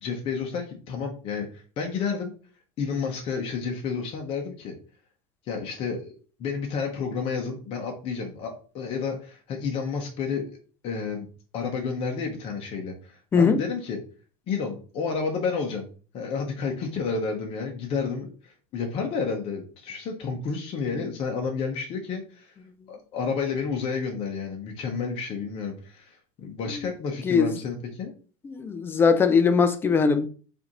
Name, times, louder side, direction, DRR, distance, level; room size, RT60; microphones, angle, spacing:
voice 1, 0.0-2.3 2.8-4.7 5.5-10.6 10.8-11.3 11.5-14.0 14.5-15.9 16.1-22.6 22.9-28.1, left 5 dB, 30° left, 0.8 m, -31 dB
voice 2, 28.4-30.3, left 5 dB, 10° left, 0.3 m, -20 dB
4.9 x 2.6 x 2.9 m
supercardioid pair, 155°, 18 cm